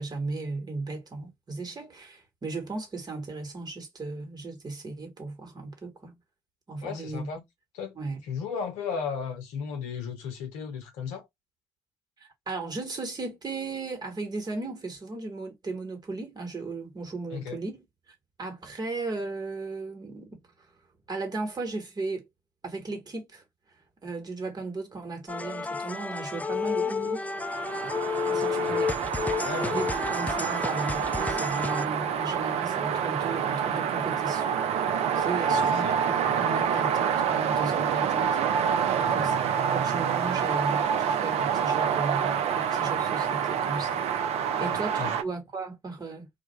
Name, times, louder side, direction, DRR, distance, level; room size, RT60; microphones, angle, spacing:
voice 1, 0.0-6.2 6.7-7.3 7.9-8.2 12.2-17.8 18.4-20.4 21.1-22.2 22.6-23.4 24.0-27.2 27.8-27.9 28.3-29.0 29.7-34.6 35.1-38.4 39.1-39.3 39.7-46.3, right 3 dB, 35° right, 1.1 m, -36 dB
voice 2, 6.8-7.4 7.7-11.3 17.3-17.6 28.5-28.9 29.4-29.9 35.5-36.0 38.9-39.5 44.6-45.2, left 6 dB, 75° left, 0.7 m, -36 dB
sound 1, 25.3-31.8, left 4 dB, 10° left, 0.3 m, -31 dB
sound 2, 27.3-45.2, right 7 dB, 60° right, 0.4 m, -27 dB
2.2 x 2.1 x 2.9 m
hypercardioid pair, 45°, 12 cm